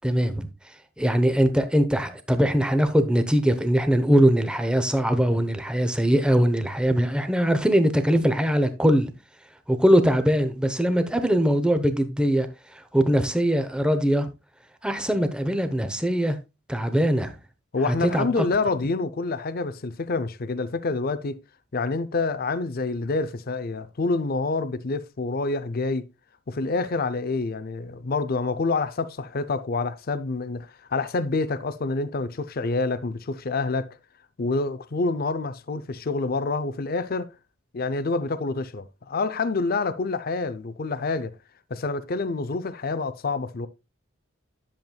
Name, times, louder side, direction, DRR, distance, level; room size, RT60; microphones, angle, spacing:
voice 1, 0.0-0.5 1.0-9.1 9.7-12.5 12.7-14.3 14.8-16.4 16.7-17.4 17.8-18.5, equal, 5° right, 0.8 m, -21 dB
voice 2, 17.7-21.4 21.7-26.0 26.5-34.0 34.4-37.3 37.7-41.3 41.7-43.7, left 3 dB, 45° left, 0.5 m, -27 dB
10.5 x 7.2 x 2.3 m
head